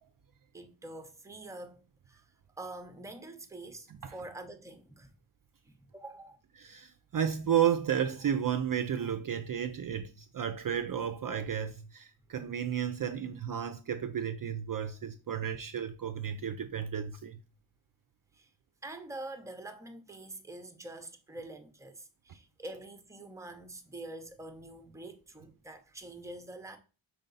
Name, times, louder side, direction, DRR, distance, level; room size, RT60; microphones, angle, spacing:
voice 1, 0.5-2.2 2.6-5.1 5.6-6.4 18.3-18.5 18.8-26.8, right 2 dB, 5° right, 0.6 m, -46 dB
voice 2, 6.6-17.4, right 9 dB, 50° right, 0.5 m, -32 dB
5.2 x 4.8 x 3.9 m
wide cardioid pair, 160°, 46 cm